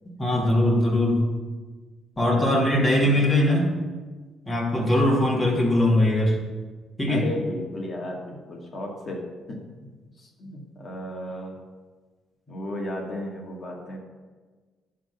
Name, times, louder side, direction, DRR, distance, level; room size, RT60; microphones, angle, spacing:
voice 1, 0.2-1.3 2.2-3.7 4.5-6.4 7.0-7.2, left 1 dB, 20° left, -3 dB, 2.8 m, -21 dB
voice 2, 2.2-3.2 4.8-5.2 7.1-9.6 10.2-11.6 12.5-14.0, left 1 dB, 40° left, 0 dB, 2.1 m, -35 dB
11.0 x 3.8 x 6.5 m, 1.4 s
cardioid pair, 90°, 0 cm